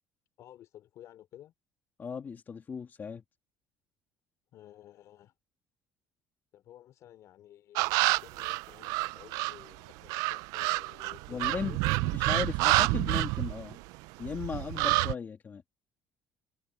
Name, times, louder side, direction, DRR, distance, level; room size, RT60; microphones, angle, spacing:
voice 1, 0.4-1.5 4.5-5.3 6.5-12.4, left 12 dB, 60° left, 3.5 m, -54 dB
voice 2, 2.0-3.2 11.3-11.8 12.1-13.8 14.2-15.6, left 6 dB, 30° left, 2.7 m, -37 dB
sound 1, 7.7-9.6 10.1-14.0 14.2-15.1, right 23 dB, 85° right, 0.4 m, -28 dB
cardioid pair, 120°, 6 cm